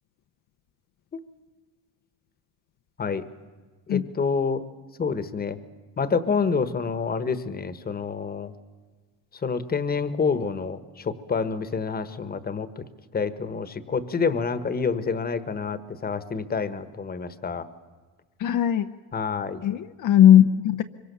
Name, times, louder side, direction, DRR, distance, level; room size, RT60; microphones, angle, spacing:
voice 1, 3.9-4.6 5.0-5.6 6.0-8.5 9.4-12.8 13.1-17.7 19.1-19.6, left 5 dB, 25° left, 13 dB, 1.3 m, -28 dB
voice 2, 18.4-18.9 19.6-20.8, left 10 dB, 60° left, 6 dB, 0.9 m, -18 dB
24.5 x 24.0 x 6.9 m, 1.4 s
cardioid pair, 125°, 36 cm